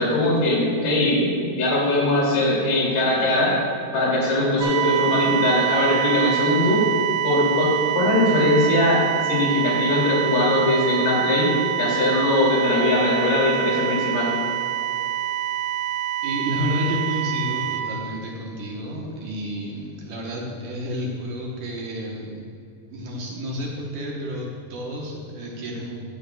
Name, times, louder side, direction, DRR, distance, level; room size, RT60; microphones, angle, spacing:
voice 1, 0.0-3.6 3.9-6.8 7.2-11.5 11.8-14.3, left 1 dB, 85° left, -4 dB, 4.6 m, -20 dB
sound 1, 4.6-17.8, right 12 dB, 85° right, 3.3 m, -26 dB
voice 2, 16.2-22.4 22.9-26.0, equal, 65° right, -2 dB, 2.3 m, -30 dB
15.5 x 10.0 x 2.3 m, 2.6 s
omnidirectional pair, 4.4 m